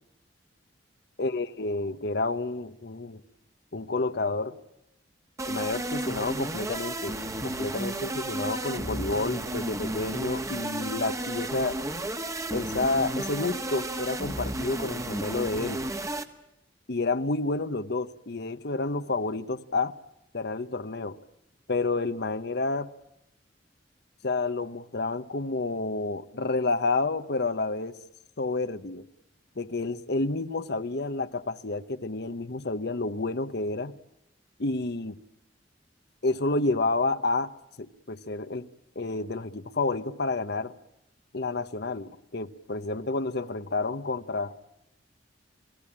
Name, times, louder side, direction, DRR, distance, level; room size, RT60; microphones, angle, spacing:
voice 1, 1.2-3.2 3.7-4.6 5.5-11.9 12.5-15.8 16.9-19.9 20.3-21.2 21.7-22.9 24.2-27.9 28.4-29.0 29.6-33.9 34.6-35.2 36.2-37.5 37.8-38.7 38.9-40.7 41.3-44.5, left 3 dB, 60° left, 1.0 m, -30 dB
sound 1, 5.4-16.3, right 1 dB, 15° right, 1.5 m, -33 dB
29.5 x 19.0 x 8.8 m
head